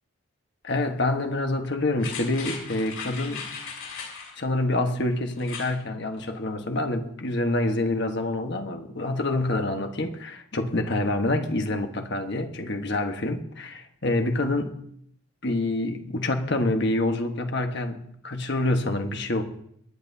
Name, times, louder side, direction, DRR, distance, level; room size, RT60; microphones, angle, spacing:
voice 1, 0.6-3.5 4.4-14.7 15.4-19.4, left 2 dB, 50° left, 1.4 m, -27 dB
sound 1, 2.0-4.3 5.4-5.7 6.1-6.2, left 5 dB, 75° left, 7.0 m, -37 dB
25.5 x 10.5 x 2.8 m
head